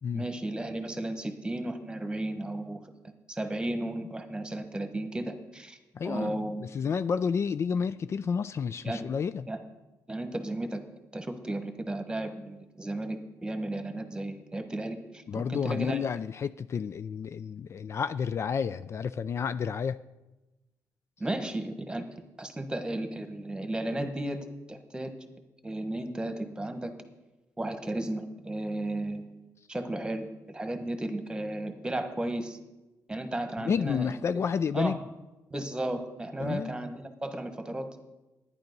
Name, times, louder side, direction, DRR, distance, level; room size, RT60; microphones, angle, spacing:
voice 1, 0.1-2.8 3.3-5.8 6.0-6.6 8.8-9.0 9.5-9.6 10.1-10.8 11.1-16.0 21.2-22.0 22.4-24.4 24.7-25.1 25.6-26.9 27.6-29.2 29.7-32.6 33.1-34.1 34.7-35.0 35.5-38.0, right 1 dB, 15° right, 7 dB, 1.3 m, -34 dB
voice 2, 5.9-9.5 15.3-20.0 33.6-35.0 36.4-36.7, left 6 dB, 45° left, 13 dB, 0.3 m, -30 dB
10.5 x 10.0 x 5.3 m, 1.0 s
cardioid pair, 95°, 6 cm